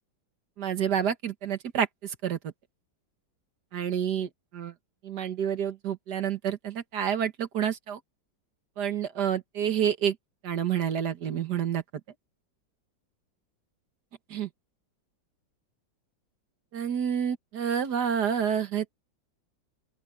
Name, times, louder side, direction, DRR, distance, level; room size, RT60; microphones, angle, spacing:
voice 1, 0.6-2.4 3.7-4.7 5.0-8.0 8.8-10.2 10.4-11.8 14.3-14.5 16.7-19.0, right 8 dB, 60° right, 1.9 m, -29 dB
open air
omnidirectional pair, 2.0 m